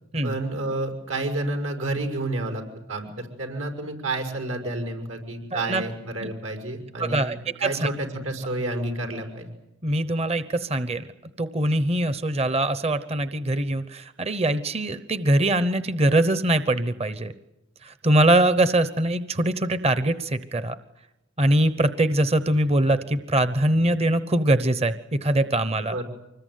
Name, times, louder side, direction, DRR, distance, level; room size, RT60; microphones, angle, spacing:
voice 1, 0.2-2.6 2.9-9.5 25.9-26.0, right 2 dB, 85° right, 5 dB, 6.0 m, -30 dB
voice 2, 5.5-5.8 6.2-6.3 7.0-7.9 9.8-11.1 11.4-17.3 17.8-20.8 21.4-25.9, right 1 dB, 30° right, 13 dB, 0.9 m, -23 dB
25.5 x 20.5 x 9.4 m, 0.92 s
head